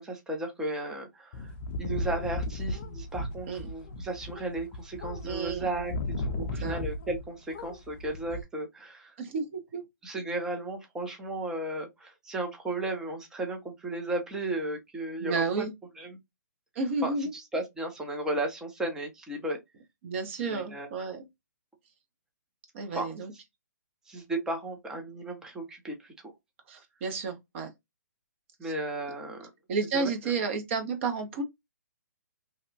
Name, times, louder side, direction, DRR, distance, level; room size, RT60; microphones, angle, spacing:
voice 1, 0.0-1.5 1.8-9.2 10.0-15.7 16.0-16.1 17.0-19.6 20.4-20.9 22.9-23.1 24.1-26.3 28.6-29.5 29.9-30.1, right 2 dB, 5° right, 0.6 m, -35 dB
sound 1, 1.3-7.3 7.5-8.4, left 2 dB, 40° left, 0.4 m, -35 dB
voice 2, 5.2-5.7 6.4-6.8 9.2-9.8 15.2-15.7 16.7-17.3 20.0-21.3 22.7-23.3 26.7-27.7 28.6-28.7 29.7-31.4, right 4 dB, 40° right, 0.9 m, -31 dB
2.8 x 2.2 x 2.6 m
hypercardioid pair, 145°, 10 cm